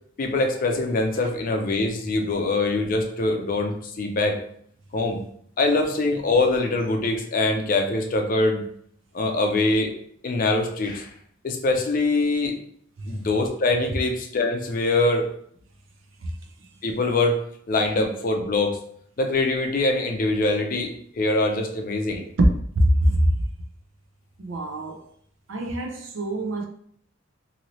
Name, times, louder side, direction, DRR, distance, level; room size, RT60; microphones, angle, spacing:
voice 1, 0.2-4.4 4.9-5.2 5.6-8.6 9.1-9.9 10.2-11.1 11.4-12.6 13.1-15.3 16.8-17.4 17.7-18.8 19.2-22.2, left 2 dB, 45° left, 0.5 m, -23 dB
voice 2, 22.7-23.3 24.4-25.0 25.5-26.6, right 1 dB, 80° right, 0.5 m, -23 dB
2.7 x 2.7 x 3.0 m
head